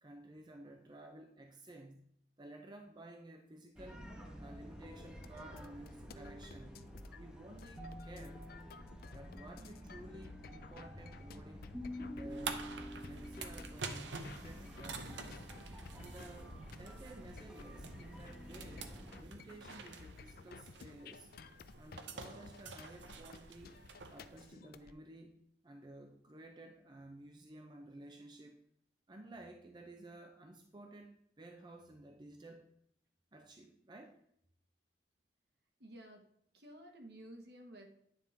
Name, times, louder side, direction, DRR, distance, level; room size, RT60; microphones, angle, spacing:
voice 1, 0.0-4.1 4.4-8.4 9.1-11.7 12.0-12.7 13.0-15.5 15.9-21.3 21.8-23.8 24.1-28.6 29.1-32.7 33.3-34.2, right 1 dB, 25° right, 4 dB, 0.5 m, -54 dB
sound 1, 3.8-19.2, equal, 5° right, 1.0 m, -49 dB
sound 2, 5.2-24.9, left 4 dB, 55° left, 0.4 m, -55 dB
sound 3, 12.3-24.5, right 4 dB, 85° right, 0.8 m, -48 dB
voice 2, 35.8-36.3 36.5-37.9, right 1 dB, 65° right, 3 dB, 1.4 m, -53 dB
9.5 x 3.7 x 4.2 m, 0.70 s
head